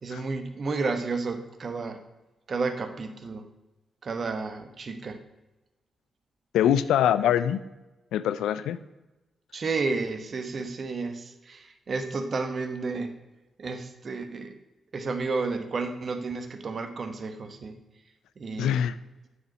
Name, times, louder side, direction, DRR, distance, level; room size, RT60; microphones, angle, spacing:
voice 1, 0.0-2.0 2.5-3.5 4.0-5.2 7.2-7.3 9.5-13.2 13.6-14.6 14.9-17.8 18.4-18.8, right 4 dB, 55° right, 7 dB, 1.0 m, -32 dB
voice 2, 6.5-7.6 8.1-8.8 18.6-18.9, left 10 dB, 80° left, 15 dB, 0.3 m, -23 dB
8.5 x 4.8 x 5.9 m, 1.0 s
hypercardioid pair, 40°, 0 cm